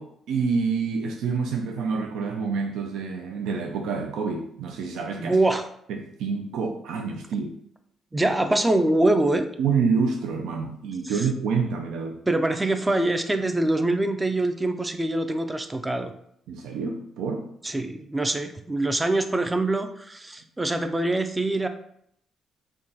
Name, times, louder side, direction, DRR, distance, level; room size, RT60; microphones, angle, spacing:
voice 1, 0.0-5.4 5.9-7.5 9.6-12.2 16.5-17.5, right 5 dB, 85° right, 2 dB, 0.4 m, -27 dB
voice 2, 5.2-5.7 8.1-9.5 11.0-11.1 12.3-16.1 17.6-21.7, right 2 dB, 15° right, 7 dB, 0.4 m, -24 dB
3.6 x 2.2 x 3.9 m, 0.69 s
cardioid pair, 90°, 0 cm